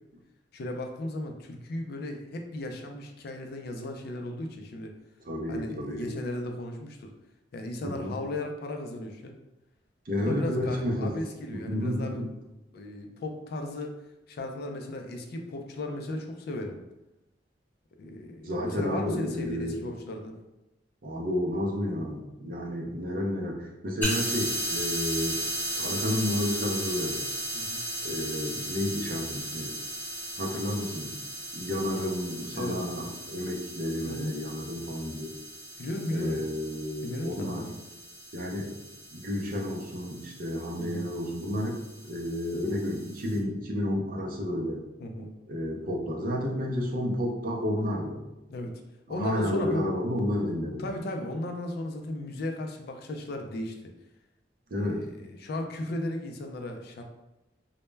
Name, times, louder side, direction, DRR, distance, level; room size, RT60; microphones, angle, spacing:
voice 1, 0.5-4.9 5.5-7.1 7.5-9.4 10.2-12.2 12.7-13.9 14.3-16.8 18.0-20.4 27.5-27.8 32.5-32.8 34.1-34.3 35.8-36.4 37.0-37.7 40.8-41.1 45.0-45.3 48.5-48.7 49.1-49.8 50.8-53.8 54.8-57.0, left 1 dB, 60° left, 4 dB, 0.3 m, -35 dB
voice 2, 5.2-6.1 7.8-8.2 10.1-11.1 11.5-12.3 18.4-19.8 21.0-25.4 25.7-27.2 28.0-29.7 30.4-31.2 31.5-35.3 36.1-37.6 38.3-38.7 39.1-41.8 42.0-44.8 45.5-48.2 49.1-50.9 54.7-55.0, left 1 dB, 50° right, 0 dB, 0.5 m, -31 dB
sound 1, 24.0-43.4, right 1 dB, 10° left, 1.1 m, -36 dB
2.1 x 2.0 x 3.2 m, 0.95 s
head